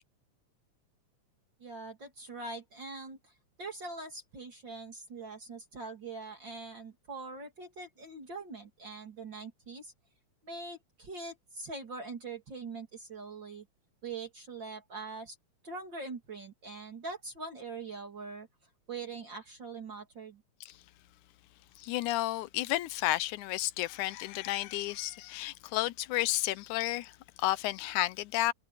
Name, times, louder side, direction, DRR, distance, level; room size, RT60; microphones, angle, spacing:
voice 1, 1.6-3.3 3.6-9.9 10.4-13.7 14.0-15.4 15.6-18.5 18.9-20.4, right 3 dB, 40° right, 3.4 m, -43 dB
voice 2, 21.8-28.5, left 16 dB, 90° left, 2.2 m, -32 dB
omnidirectional pair, 3.3 m